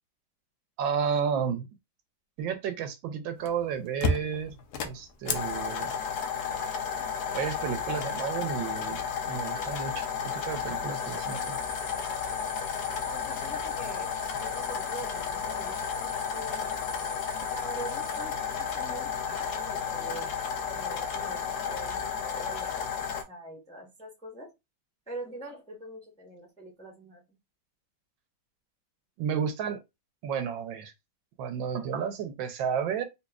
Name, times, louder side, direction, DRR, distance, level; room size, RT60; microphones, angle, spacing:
voice 1, 0.8-1.7 2.4-4.5 4.8-5.9 7.3-11.6 29.2-29.8 30.2-30.9 31.4-33.1, right 7 dB, 80° right, 1.3 m, -32 dB
sound 1, 3.5-3.6 4.0-23.2, left 6 dB, 70° left, 1.0 m, -32 dB
sound 2, 5.3-21.9, left 4 dB, 50° left, 0.6 m, -55 dB
sound 3, 10.9-18.2, left 1 dB, 20° left, 2.0 m, -46 dB
voice 2, 13.0-16.8 17.5-20.3 20.7-24.5 25.1-27.2, right 1 dB, 5° left, 0.6 m, -44 dB
4.1 x 2.8 x 2.3 m
omnidirectional pair, 2.2 m